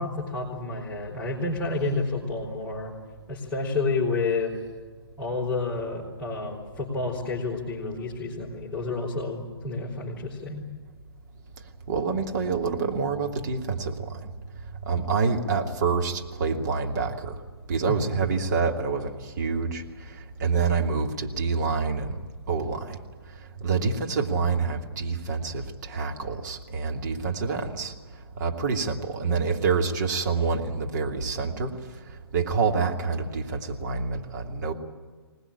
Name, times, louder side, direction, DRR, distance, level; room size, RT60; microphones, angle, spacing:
voice 1, 0.0-2.9 3.3-4.5 5.2-10.7 17.9-18.3, left 3 dB, 5° left, -8 dB, 4.6 m, -30 dB
voice 2, 11.9-14.1 14.9-17.4 17.7-19.8 20.4-22.1 22.5-23.0 23.6-27.9 28.4-31.8 32.3-34.7, right 5 dB, 45° right, 2 dB, 2.8 m, -27 dB
25.5 x 20.0 x 8.8 m, 1.4 s
figure-of-eight pair, 130°, 14 cm